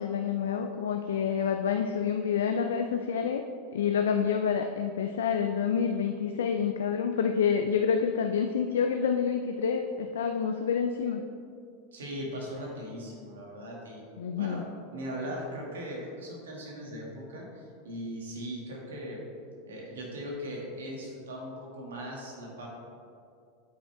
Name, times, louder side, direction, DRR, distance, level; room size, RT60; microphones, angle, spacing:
voice 1, 0.0-3.4 3.7-11.2 14.2-14.6, left 7 dB, 85° left, 5 dB, 0.4 m, -28 dB
voice 2, 11.9-14.0 14.4-14.6 14.9-19.2 19.7-22.7, equal, 90° right, -2 dB, 1.9 m, -39 dB
8.2 x 6.3 x 3.4 m, 2.4 s
hypercardioid pair, 105°, 0 cm